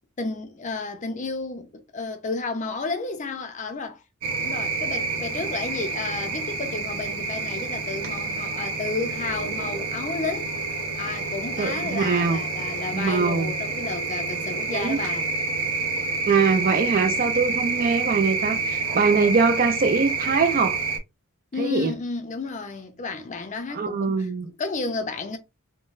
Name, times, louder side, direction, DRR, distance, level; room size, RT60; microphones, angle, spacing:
voice 1, 0.2-4.0 4.4-10.5 11.0-15.3 21.5-25.4, left 3 dB, 35° left, 0.5 m, -32 dB
sound 1, 4.2-21.0, right 4 dB, 70° right, 0.9 m, -28 dB
voice 2, 11.6-12.4 12.9-13.5 14.7-15.0 16.3-20.8 21.6-21.9 23.7-24.5, right 4 dB, 40° right, 0.4 m, -22 dB
3.7 x 2.1 x 2.5 m
head